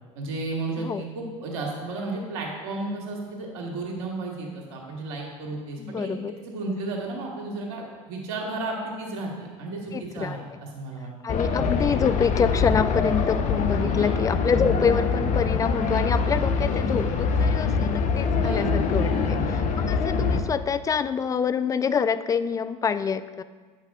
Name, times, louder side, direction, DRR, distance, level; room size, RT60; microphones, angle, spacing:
voice 1, 0.1-11.1 13.8-14.2 18.3-19.8, right 2 dB, 75° right, 0 dB, 1.9 m, -33 dB
voice 2, 5.8-6.3 9.9-10.6 11.2-19.4 19.8-23.4, left 6 dB, 20° left, 13 dB, 0.3 m, -26 dB
sound 1, 11.3-20.4, left 5 dB, 45° left, 0.8 m, -24 dB
9.2 x 5.8 x 3.6 m, 1.5 s
hypercardioid pair, 85°, 17 cm